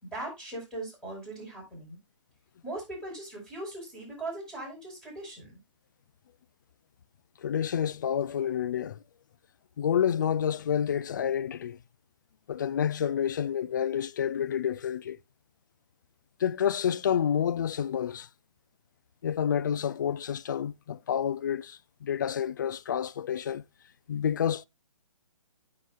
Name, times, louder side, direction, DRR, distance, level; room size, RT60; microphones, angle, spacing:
voice 1, 0.0-2.0 2.6-5.5, right 2 dB, 5° left, 5.3 m, -39 dB
voice 2, 7.4-9.0 9.8-11.8 12.5-15.2 16.4-18.3 19.2-23.6 24.1-24.6, left 8 dB, 35° left, 0.4 m, -29 dB
16.0 x 5.8 x 2.5 m
figure-of-eight pair, 135°, 17 cm